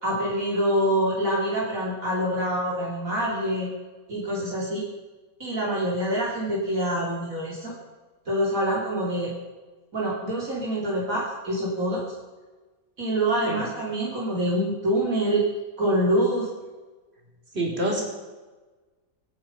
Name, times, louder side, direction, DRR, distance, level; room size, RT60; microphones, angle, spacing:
voice 1, 0.0-3.7 4.1-4.8 5.4-7.7 8.3-9.3 9.9-12.0 13.0-15.4 15.8-16.5, right 1 dB, 60° right, -5 dB, 3.5 m, -25 dB
voice 2, 17.5-18.0, right 1 dB, 40° right, -1 dB, 4.4 m, -26 dB
25.0 x 9.4 x 5.4 m, 1.3 s
omnidirectional pair, 1.7 m